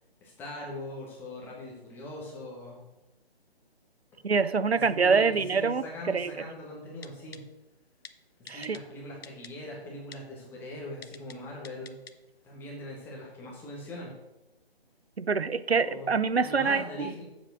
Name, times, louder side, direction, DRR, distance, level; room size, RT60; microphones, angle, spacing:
voice 1, 0.2-2.8 4.8-7.4 8.5-11.9 12.4-14.1 15.7-16.1 16.4-17.2, left 1 dB, 5° left, -3 dB, 1.5 m, -41 dB
voice 2, 4.2-6.3 8.5-8.8 15.2-17.1, right 5 dB, 90° right, 15 dB, 0.6 m, -25 dB
Typing, 7.0-7.4 8.1-8.2 8.5-8.8 9.2-9.5 10.1-10.2 11.0-11.4 11.7-12.1 12.5-12.6, left 5 dB, 75° left, 0.8 m, -45 dB
7.4 x 7.2 x 6.1 m, 0.95 s
figure-of-eight pair, 150°, 31 cm